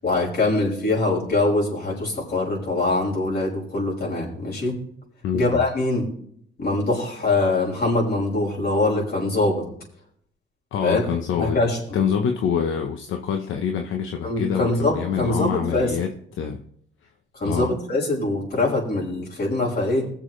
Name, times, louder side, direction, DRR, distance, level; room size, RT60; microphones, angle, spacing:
voice 1, 0.0-4.8 5.3-6.1 6.6-9.6 10.8-11.0 11.4-11.8 14.2-15.9 17.3-20.1, left 2 dB, 55° left, -3 dB, 6.0 m, -23 dB
voice 2, 5.2-5.6 10.7-11.6 11.9-16.6 17.4-17.7, left 7 dB, 80° left, 4 dB, 1.0 m, -26 dB
21.5 x 7.2 x 3.3 m, 0.67 s
cardioid pair, 90°, 20 cm